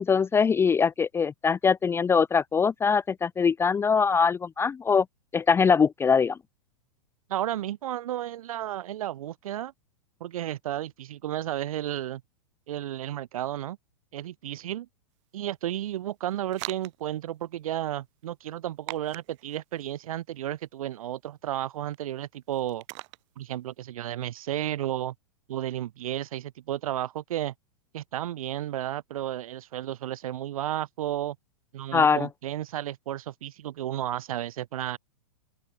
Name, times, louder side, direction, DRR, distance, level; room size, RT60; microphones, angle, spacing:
voice 1, 0.0-5.0 5.3-6.4 31.9-32.3, left 5 dB, 15° left, 0.7 m, -22 dB
voice 2, 7.3-9.7 10.2-12.2 12.7-13.8 14.1-14.9 15.3-22.8 23.4-25.1 25.5-27.5 27.9-31.4 31.7-35.0, right 12 dB, 65° right, 3.5 m, -33 dB
sound 1, 15.1-23.8, right 23 dB, 50° right, 7.9 m, -46 dB
open air
hypercardioid pair, 120°, 19 cm